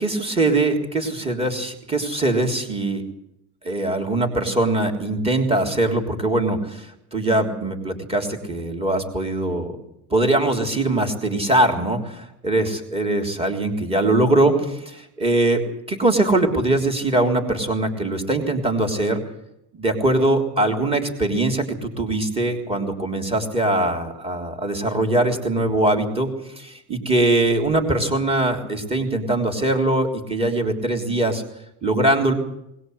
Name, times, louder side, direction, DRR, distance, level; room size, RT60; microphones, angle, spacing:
voice 1, 0.0-3.0 3.6-9.7 10.1-15.6 15.9-19.2 19.7-31.4 31.8-32.3, right 2 dB, 15° right, 3 dB, 3.4 m, -22 dB
21.0 x 19.5 x 7.9 m, 0.80 s
cardioid pair, 155°, 41 cm